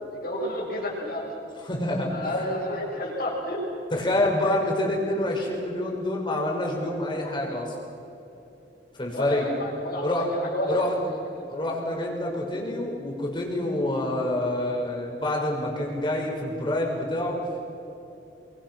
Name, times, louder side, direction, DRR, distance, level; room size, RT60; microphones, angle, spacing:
voice 1, 0.1-1.3 2.1-3.6 9.1-10.8 11.3-11.7, left 1 dB, 55° left, -2 dB, 7.4 m, -31 dB
voice 2, 1.6-2.4 3.9-7.7 9.0-9.5 10.0-10.3 10.7-11.0 11.5-17.4, left 1 dB, 25° left, -1 dB, 5.8 m, -27 dB
28.5 x 24.5 x 6.3 m, 2.9 s
head